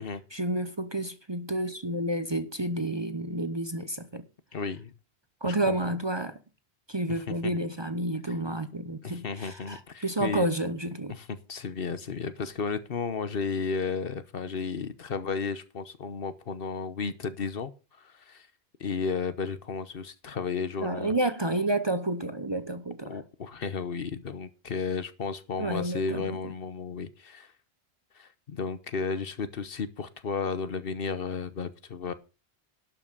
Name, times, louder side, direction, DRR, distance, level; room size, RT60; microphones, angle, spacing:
voice 1, 0.3-4.2 5.4-6.4 6.9-11.2 20.8-23.2 25.6-26.4, right 1 dB, 25° right, 0.8 m, -30 dB
voice 2, 4.5-4.9 5.4-5.8 7.1-7.5 9.0-10.4 11.1-18.5 18.8-21.1 23.0-27.5 28.1-32.1, left 5 dB, 60° left, 1.1 m, -33 dB
12.0 x 5.8 x 6.6 m
omnidirectional pair, 1.1 m